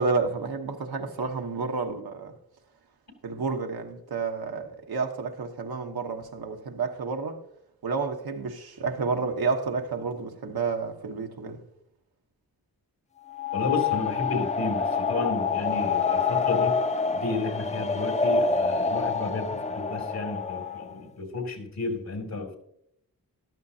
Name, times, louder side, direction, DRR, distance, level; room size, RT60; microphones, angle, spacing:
voice 1, 0.0-2.3 3.2-7.4 7.8-11.6, right 4 dB, 90° right, 1.2 m, -30 dB
sound 1, 13.3-20.9, left 5 dB, 20° left, 0.5 m, -27 dB
voice 2, 13.5-16.8 17.1-22.6, left 3 dB, 75° left, 2.8 m, -32 dB
14.0 x 12.0 x 2.8 m
cardioid pair, 50°, 36 cm